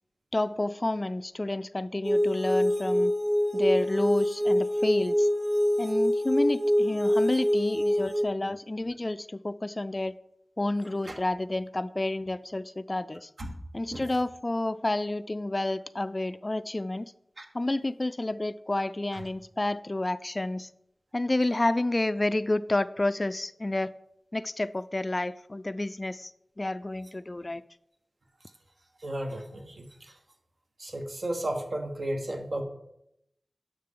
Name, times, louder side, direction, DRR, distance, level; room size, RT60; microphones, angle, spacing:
voice 1, 0.3-3.1 3.5-5.3 5.8-10.1 10.6-13.3 13.7-17.1 17.5-20.7 21.1-23.9 24.3-26.3 26.6-27.6, left 2 dB, 35° left, 15 dB, 0.3 m, -30 dB
sound 1, 2.0-8.2, equal, 10° right, 1.3 m, -25 dB
voice 2, 29.0-30.1 30.8-32.6, right 1 dB, 65° right, 3 dB, 1.4 m, -34 dB
10.5 x 6.4 x 3.8 m, 0.80 s
wide cardioid pair, 65°, 0 cm